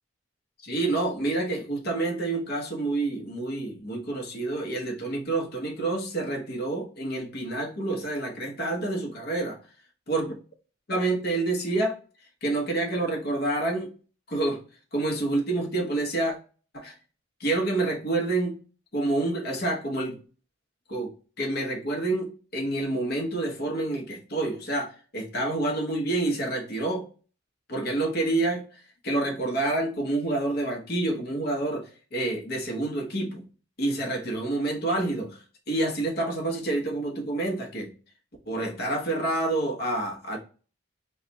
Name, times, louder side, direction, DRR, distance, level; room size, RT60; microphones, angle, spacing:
voice 1, 0.6-9.6 10.1-10.3 10.9-12.0 12.4-13.9 14.3-14.6 14.9-16.4 16.7-16.9 17.4-18.6 18.9-20.2 20.9-21.1 21.4-27.0 27.7-33.4 33.8-37.9 38.5-40.4, right 2 dB, 50° left, 2 dB, 1.0 m, -28 dB
3.2 x 2.3 x 3.9 m, 0.38 s
head